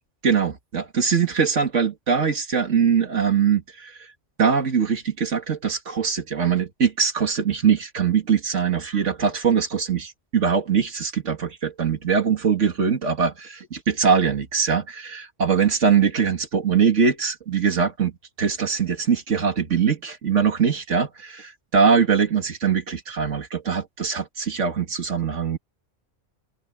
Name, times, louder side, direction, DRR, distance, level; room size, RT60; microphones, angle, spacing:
voice 1, 0.2-4.1 4.4-18.1 18.4-25.6, right 6 dB, 75° right, 2.6 m, -22 dB
open air
omnidirectional pair, 1.3 m